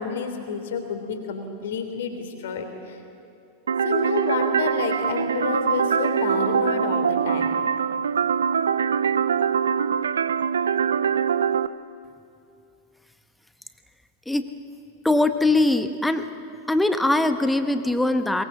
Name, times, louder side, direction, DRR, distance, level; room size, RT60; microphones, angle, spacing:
voice 1, 0.0-3.0 3.8-7.5, left 5 dB, 60° left, 5 dB, 3.3 m, -29 dB
sound 1, 3.7-11.7, right 7 dB, 70° right, 0.5 m, -23 dB
voice 2, 15.0-16.3 16.7-18.4, left 2 dB, 5° left, 9 dB, 1.3 m, -21 dB
22.5 x 22.0 x 7.4 m, 2.5 s
figure-of-eight pair, 90°, 0 cm